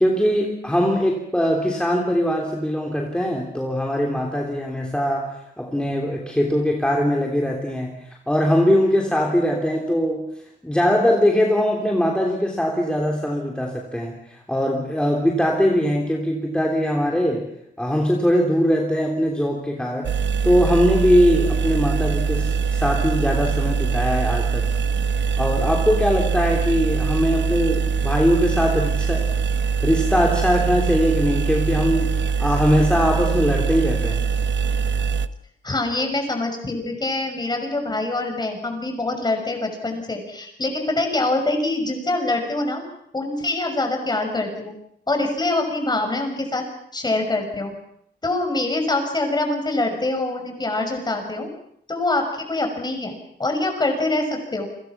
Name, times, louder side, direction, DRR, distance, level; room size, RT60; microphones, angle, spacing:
voice 1, 0.0-10.3 10.6-17.5 17.8-20.2 20.4-24.7 25.4-29.3 29.8-34.2, equal, 5° left, 0 dB, 3.3 m, -21 dB
sound 1, 20.0-35.3, right 5 dB, 85° right, 1.1 m, -23 dB
voice 2, 35.6-42.8 43.1-44.7 45.1-46.6 46.9-47.7 48.2-51.5 51.9-54.7, left 2 dB, 25° left, 5 dB, 6.0 m, -24 dB
30.0 x 25.5 x 6.0 m, 0.72 s
wide cardioid pair, 145°, 18 cm